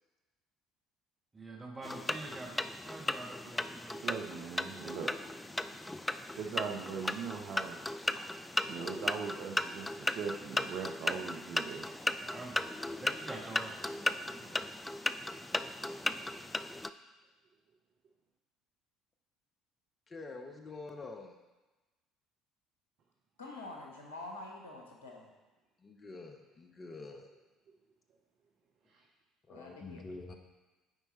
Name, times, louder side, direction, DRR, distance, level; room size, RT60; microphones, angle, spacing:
voice 1, 1.3-4.0 12.2-14.7, right 2 dB, 20° right, -1 dB, 1.5 m, -46 dB
sound 1, 1.8-16.9, left 1 dB, 10° left, 0.3 m, -36 dB
voice 2, 4.0-5.1 5.7-5.8 6.3-8.2 8.7-11.9 28.9-29.0, right 6 dB, 50° right, 0 dB, 0.8 m, -40 dB
voice 3, 20.1-21.4 25.8-27.3 29.5-30.3, left 3 dB, 30° left, 4 dB, 0.9 m, -46 dB
voice 4, 23.4-25.3 29.5-30.1, left 2 dB, 75° left, 0 dB, 1.2 m, -46 dB
8.2 x 4.7 x 4.3 m, 1.2 s
figure-of-eight pair, 55°, 0 cm